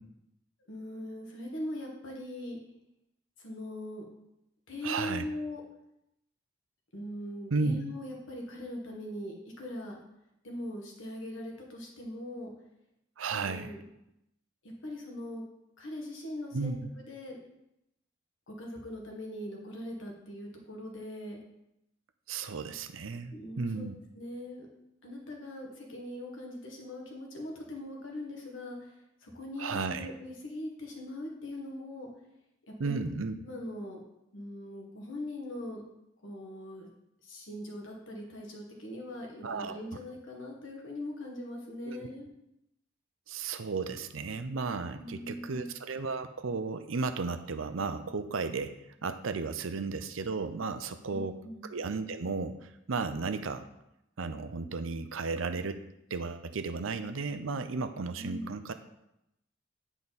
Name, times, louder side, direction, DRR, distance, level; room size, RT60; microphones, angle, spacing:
voice 1, 0.7-2.6 3.4-4.0 4.7-5.6 6.9-10.0 10.4-12.5 13.3-13.8 14.6-15.5 15.8-17.4 18.5-21.4 23.3-23.9 24.1-24.7 25.0-32.1 32.6-33.0 33.4-34.0 34.3-35.8 36.2-36.9 37.2-42.3 45.0-45.7 51.1-51.7 58.2-58.5, left 1 dB, 75° left, 0 dB, 1.6 m, -41 dB
voice 2, 4.8-5.3 7.5-7.8 13.2-13.7 16.5-16.9 22.3-23.9 29.6-30.1 32.8-33.3 39.4-39.8 41.9-42.1 43.3-48.7 49.0-51.4 51.6-53.6 54.2-55.8 56.1-58.7, right 4 dB, 85° right, 9 dB, 0.6 m, -34 dB
8.9 x 4.9 x 4.2 m, 0.84 s
head